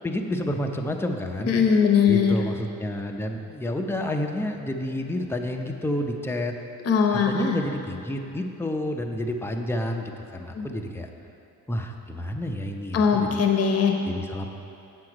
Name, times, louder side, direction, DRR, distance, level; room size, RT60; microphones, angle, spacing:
voice 1, 0.0-1.6 2.1-6.5 7.1-11.1 11.7-13.4 14.1-14.5, left 1 dB, 10° left, 3 dB, 0.6 m, -30 dB
voice 2, 1.5-2.4 6.8-7.6 10.5-10.7 12.9-13.9, left 6 dB, 55° left, 3 dB, 0.9 m, -20 dB
7.5 x 6.2 x 4.8 m, 2.7 s
cardioid pair, 90°, 30 cm